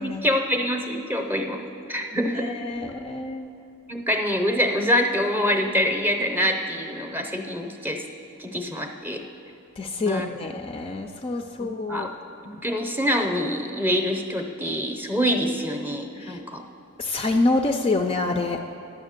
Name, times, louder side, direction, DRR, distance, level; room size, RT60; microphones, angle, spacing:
voice 1, 0.0-2.6 3.9-8.0 8.4-9.2 10.0-10.3 11.9-12.1 12.6-16.6, equal, 10° right, 3 dB, 0.7 m, -25 dB
voice 2, 2.2-3.5 9.8-12.1 16.2-16.4 17.0-18.6, left 2 dB, 25° left, 4 dB, 0.4 m, -26 dB
11.0 x 7.4 x 6.5 m, 2.6 s
head